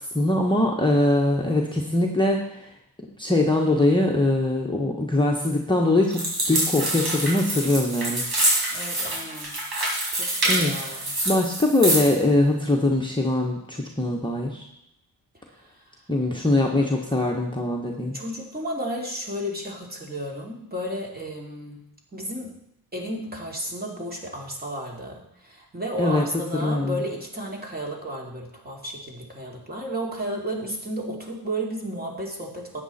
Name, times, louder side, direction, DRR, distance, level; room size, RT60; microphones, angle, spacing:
voice 1, 0.1-2.5 3.2-8.2 10.5-11.0 11.2-14.7 16.1-18.2 26.0-26.2 26.5-27.0, left 2 dB, 10° left, -1 dB, 1.2 m, -22 dB
sound 1, 6.1-12.2, right 1 dB, 70° right, 4.5 m, -26 dB
voice 2, 8.7-9.5 10.1-11.2 18.1-21.8 22.1-22.5 22.9-32.8, equal, 25° right, -1 dB, 2.8 m, -33 dB
12.5 x 8.8 x 4.2 m, 0.79 s
cardioid pair, 105°, 40 cm